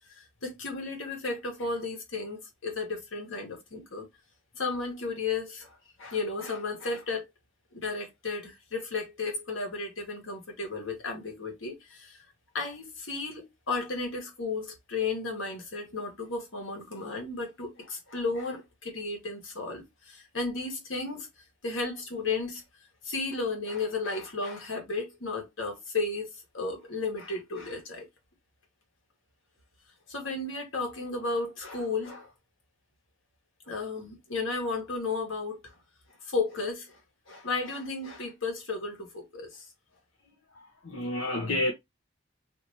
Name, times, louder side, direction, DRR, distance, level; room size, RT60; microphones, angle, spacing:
voice 1, 0.1-4.1 4.5-7.2 7.7-12.2 12.5-21.3 21.6-22.6 23.0-28.1 30.1-32.3 33.7-35.7 36.2-37.0 37.3-39.6, left 3 dB, 75° left, 1.4 m, -34 dB
voice 2, 40.5-41.7, left 1 dB, 90° left, 0.8 m, -30 dB
3.1 x 2.9 x 2.8 m
head